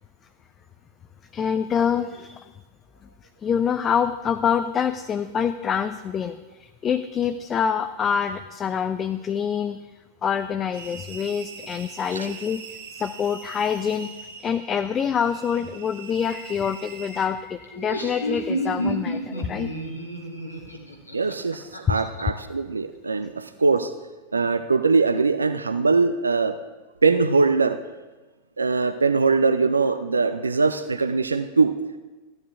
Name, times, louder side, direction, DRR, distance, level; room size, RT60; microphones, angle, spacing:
voice 1, 1.3-2.5 3.4-9.8 10.2-12.6 13.0-14.1 14.4-20.0 21.9-22.0, left 7 dB, 25° left, 10 dB, 0.3 m, -26 dB
sound 1, 10.7-17.3, right 5 dB, 55° right, 0.9 m, -43 dB
Laughter, 17.6-22.2, equal, 85° left, 1.2 m, -30 dB
voice 2, 21.1-23.9 24.3-26.6 27.0-27.8 28.6-31.7, right 4 dB, 75° right, 10 dB, 0.4 m, -22 dB
14.5 x 10.5 x 2.4 m, 1.2 s
figure-of-eight pair, 90°, 0 cm